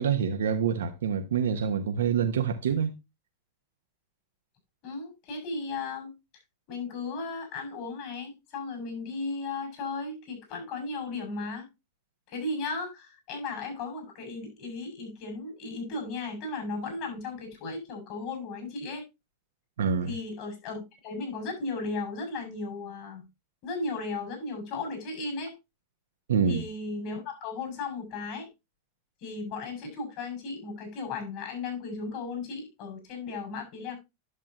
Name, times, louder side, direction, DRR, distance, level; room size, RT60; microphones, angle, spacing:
voice 1, 0.0-3.0 19.8-20.1 26.3-26.6, right 7 dB, 80° right, 1.0 m, -26 dB
voice 2, 4.8-6.1 6.7-11.7 12.3-19.0 20.1-23.3 23.6-25.5 26.5-28.5 29.2-34.0, left 3 dB, 55° left, 7.3 m, -35 dB
11.0 x 7.3 x 3.0 m
hypercardioid pair, 105°, 0 cm